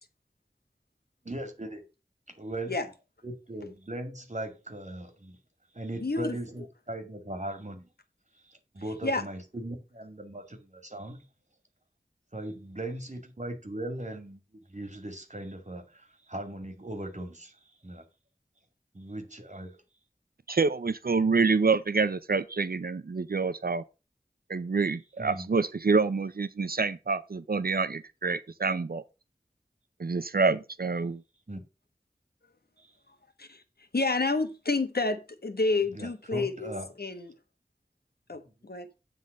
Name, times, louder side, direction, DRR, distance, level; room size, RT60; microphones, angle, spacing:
voice 1, 1.2-1.9 2.3-2.8 3.2-5.4 5.7-7.9 8.3-11.3 12.3-18.0 18.9-19.8 25.2-25.5 31.5-31.6 32.8-33.0 35.9-36.9, right 1 dB, 50° right, 2.2 m, -39 dB
voice 2, 6.0-6.4 9.0-9.2 33.4-33.6 33.9-36.7 37.0-37.3 38.3-38.9, left 3 dB, 80° left, 1.3 m, -29 dB
voice 3, 20.5-23.8 24.5-29.0 30.0-31.2, right 4 dB, 70° right, 0.6 m, -27 dB
9.4 x 3.8 x 6.5 m
wide cardioid pair, 45°, 16 cm